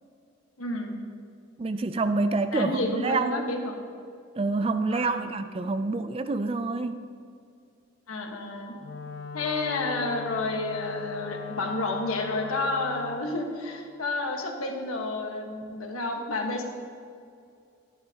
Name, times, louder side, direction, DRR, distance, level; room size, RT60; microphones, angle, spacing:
voice 1, 0.6-1.0 2.5-3.7 4.9-5.3 8.1-8.7 9.3-16.6, left 2 dB, 90° left, 2 dB, 1.3 m, -30 dB
voice 2, 1.6-3.6 4.4-7.0, right 3 dB, 25° right, 10 dB, 0.3 m, -27 dB
Wind instrument woodwind instrument, 8.8-13.3, left 5 dB, 55° left, 0.4 m, -39 dB
13.0 x 9.9 x 2.9 m, 2.4 s
head